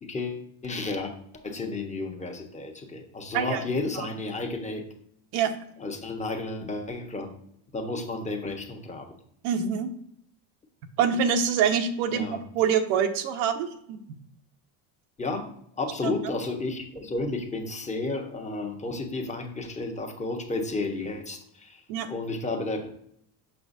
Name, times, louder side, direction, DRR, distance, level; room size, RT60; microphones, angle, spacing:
voice 1, 0.0-1.1 1.4-4.9 5.8-7.3 7.7-9.1 12.1-12.4 15.2-15.5 15.8-21.8 22.1-22.9, left 3 dB, 15° left, 2 dB, 1.1 m, -32 dB
voice 2, 9.4-9.9 11.0-14.0 16.0-16.2 21.9-22.1, right 7 dB, 75° right, 8 dB, 0.9 m, -25 dB
6.1 x 5.7 x 2.7 m, 0.70 s
supercardioid pair, 95°, 49 cm